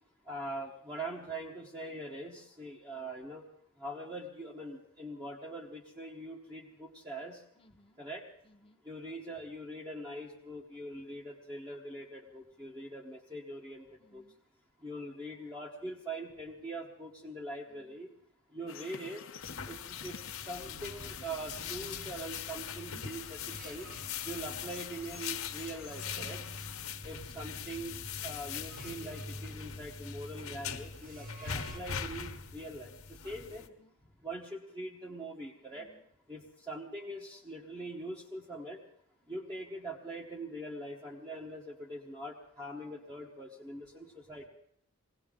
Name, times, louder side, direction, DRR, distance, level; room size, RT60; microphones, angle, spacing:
voice 1, 0.2-3.5 3.8-7.4 8.0-8.3 8.8-14.2 14.8-18.1 18.5-19.2 19.6-23.9 24.2-26.4 27.0-33.7 34.2-35.9 36.3-38.8 39.3-44.5, right 1 dB, 20° right, -2 dB, 1.2 m, -43 dB
voice 2, 7.6-8.0 8.4-8.8 14.0-14.4 17.6-18.0 26.2-26.6 33.6-34.2 35.7-36.0, left 1 dB, 25° left, 4 dB, 1.0 m, -60 dB
sound 1, 18.7-26.9, left 7 dB, 65° left, 0.8 m, -50 dB
sound 2, 19.4-33.7, left 7 dB, 85° left, 1.2 m, -42 dB
sound 3, 20.7-31.8, equal, 45° right, 1.4 m, -49 dB
21.5 x 17.0 x 3.8 m, 0.71 s
head